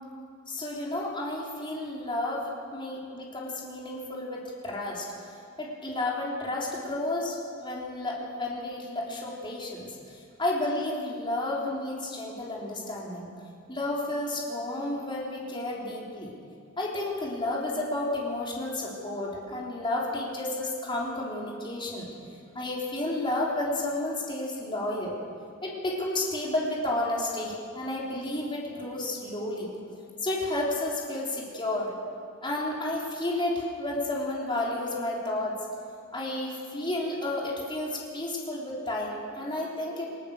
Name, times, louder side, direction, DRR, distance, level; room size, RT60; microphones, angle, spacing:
voice 1, 0.5-5.3 5.6-13.3 13.7-16.3 16.8-22.1 22.5-25.2 25.6-29.7 30.2-31.9 32.4-35.6 36.1-40.1, left 1 dB, 25° left, -3 dB, 3.7 m, -31 dB
21.5 x 20.5 x 6.7 m, 2.5 s
head